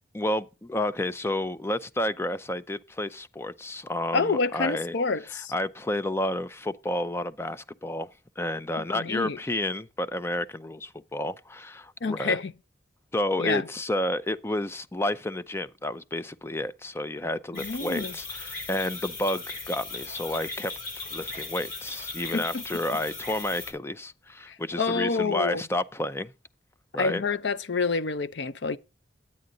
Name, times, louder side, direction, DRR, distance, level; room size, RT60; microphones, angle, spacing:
voice 1, 0.1-4.9 5.5-8.1 8.4-12.4 13.1-20.7 21.0-26.3 26.9-27.2, left 1 dB, 15° left, 0.5 m, -30 dB
voice 2, 4.1-5.5 8.8-9.4 12.0-12.5 13.4-13.7 17.5-18.1 22.3-22.6 24.5-25.6 26.9-28.8, left 4 dB, 70° left, 0.6 m, -28 dB
sound 1, 17.5-23.7, left 3 dB, 50° left, 4.6 m, -38 dB
10.5 x 8.6 x 3.8 m
head